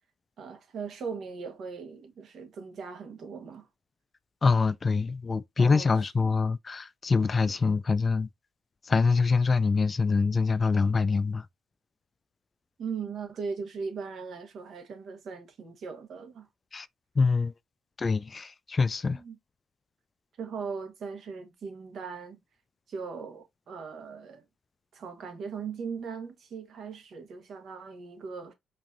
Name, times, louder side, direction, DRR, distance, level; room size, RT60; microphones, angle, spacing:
voice 1, 0.4-3.7 5.6-5.9 7.5-7.6 12.8-16.5 19.1-19.3 20.4-22.4 22.9-24.4 24.9-28.5, right 5 dB, 65° right, 1.3 m, -39 dB
voice 2, 4.4-8.3 8.8-11.5 16.7-16.9 17.2-17.5 18.0-19.2, left 4 dB, 35° left, 0.3 m, -25 dB
4.6 x 2.7 x 2.6 m
cardioid pair, 90°, 0 cm